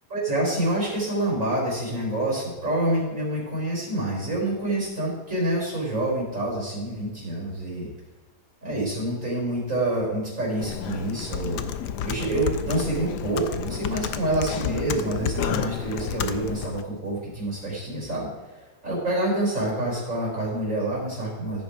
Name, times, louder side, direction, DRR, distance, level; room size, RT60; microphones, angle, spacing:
voice 1, 0.1-7.9 8.6-11.7 12.0-18.3 18.8-21.6, right 1 dB, 45° right, -4 dB, 4.4 m, -27 dB
Computer keyboard, 10.6-16.8, left 8 dB, 75° left, 1.2 m, -31 dB
15.0 x 6.3 x 4.9 m, 1.3 s
omnidirectional pair, 1.8 m